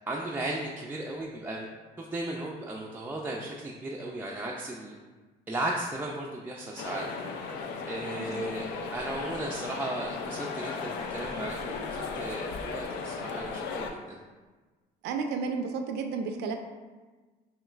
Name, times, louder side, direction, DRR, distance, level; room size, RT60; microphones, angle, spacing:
voice 1, 0.1-1.7 2.0-4.9 5.5-7.1 7.9-8.7 8.9-14.2, right 1 dB, 10° right, -3 dB, 0.3 m, -35 dB
sound 1, 6.8-13.9, left 4 dB, 90° left, 0.4 m, -36 dB
voice 2, 8.1-8.5 15.0-16.6, right 5 dB, 80° right, 5 dB, 0.4 m, -32 dB
5.1 x 3.0 x 2.4 m, 1.3 s
cardioid pair, 110°, 17 cm